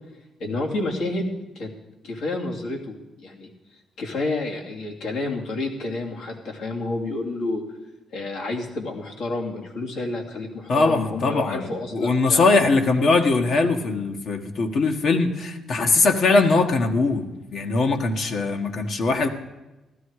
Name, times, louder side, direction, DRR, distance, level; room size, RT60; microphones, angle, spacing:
voice 1, 0.4-1.7 2.0-3.5 4.0-7.6 8.1-12.4, left 2 dB, 80° left, -1 dB, 2.8 m, -29 dB
voice 2, 10.7-19.3, left 3 dB, 60° left, 4 dB, 1.6 m, -21 dB
15.0 x 12.5 x 4.9 m, 1.0 s
cardioid pair, 90°, 0 cm